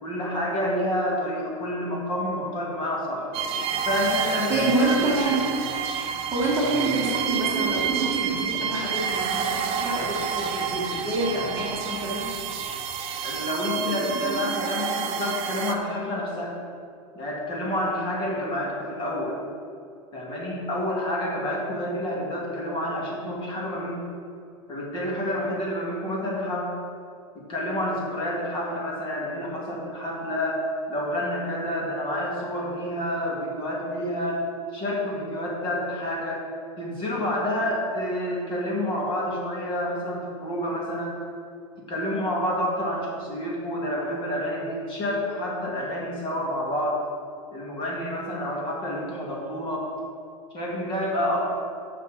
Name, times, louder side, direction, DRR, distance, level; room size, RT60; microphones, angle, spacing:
voice 1, 0.0-3.3 3.8-4.7 5.0-5.1 13.2-16.5 17.1-19.4 20.1-24.1 24.7-26.7 27.5-34.4 34.7-36.4 36.8-41.2 41.9-47.0 47.5-49.9 50.5-51.5, left 1 dB, 30° left, -3 dB, 2.1 m, -28 dB
sound 1, 3.3-15.7, right 7 dB, 35° right, 0.7 m, -29 dB
voice 2, 4.5-5.7 6.3-12.3, right 2 dB, 15° right, -5 dB, 1.8 m, -27 dB
6.8 x 6.1 x 6.5 m, 2.4 s
supercardioid pair, 140°, 17 cm